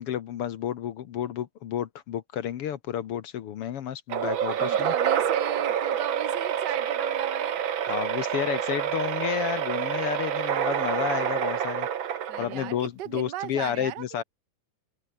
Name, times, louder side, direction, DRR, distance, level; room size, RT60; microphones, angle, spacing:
voice 1, 0.0-4.9 7.9-11.9 12.4-14.2, left 10 dB, 60° left, 1.7 m, -31 dB
sound 1, 4.1-12.9, right 9 dB, 50° right, 1.7 m, -27 dB
voice 2, 4.6-8.0 12.3-14.2, right 13 dB, 80° right, 0.9 m, -37 dB
omnidirectional pair, 3.6 m